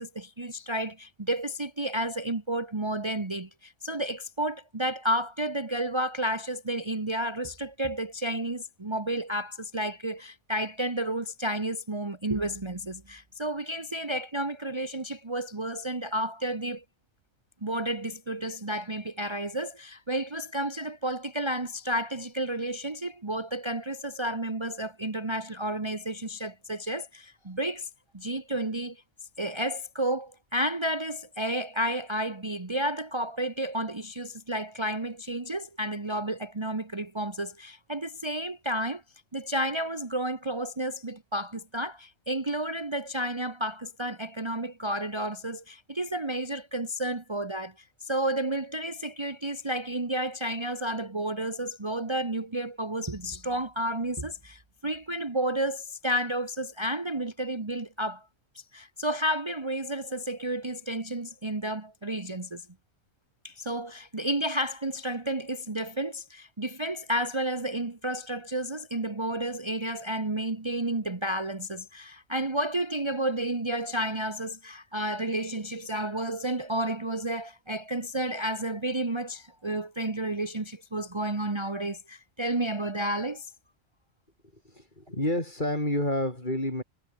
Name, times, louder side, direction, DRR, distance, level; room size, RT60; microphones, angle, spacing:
voice 1, 0.0-16.8 17.6-27.9 28.1-29.0 29.4-39.0 39.3-58.3 58.7-62.6 63.4-83.5, right 1 dB, 20° right, 1.5 m, -31 dB
voice 2, 84.6-86.8, left 1 dB, 35° left, 6.8 m, -29 dB
omnidirectional pair, 1.4 m